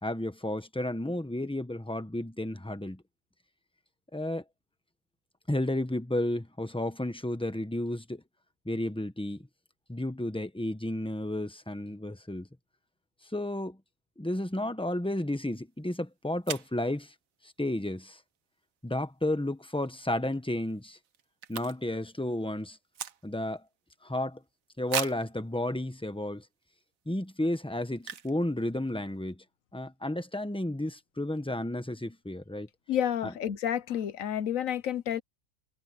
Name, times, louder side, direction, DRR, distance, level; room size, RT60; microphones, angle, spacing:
voice 1, 0.0-3.0 4.1-4.4 5.5-8.2 8.6-9.5 9.9-12.5 13.3-13.8 14.2-17.1 17.4-18.2 18.8-21.0 21.5-22.8 23.2-23.6 24.0-24.4 24.8-26.4 27.1-29.4 29.7-32.7 33.2-33.3, left 1 dB, 5° left, 1.1 m, -32 dB
sound 1, 15.8-15.9 16.4-16.8 19.7-20.0 20.3-20.4 20.6-22.1 22.3-23.6 24.0-24.1 24.9-25.3 26.0-26.1 26.6-26.8 28.0-28.4 28.7-28.8 29.0-29.3, right 8 dB, 75° right, 1.4 m, -37 dB
voice 2, 32.9-35.2, left 10 dB, 75° left, 1.3 m, -30 dB
omnidirectional pair, 1.4 m